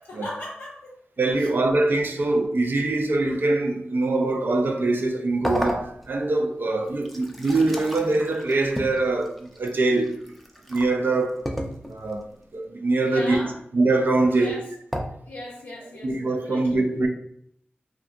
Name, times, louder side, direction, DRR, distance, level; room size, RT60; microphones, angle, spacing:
voice 1, 0.0-1.0 1.4-1.5 13.0-13.6 14.3-14.7 15.3-16.8, left 1 dB, 90° left, 0.4 m, -38 dB
voice 2, 1.2-10.2 10.7-11.4 11.9-13.4 13.7-14.6 16.0-17.1, right 2 dB, 65° right, 0.4 m, -23 dB
sound 1, 5.4-6.4 6.9-10.9 11.5-12.2 14.9-15.0, equal, ahead, 0.5 m, -32 dB
2.6 x 2.3 x 2.4 m
cardioid pair, 45°, 4 cm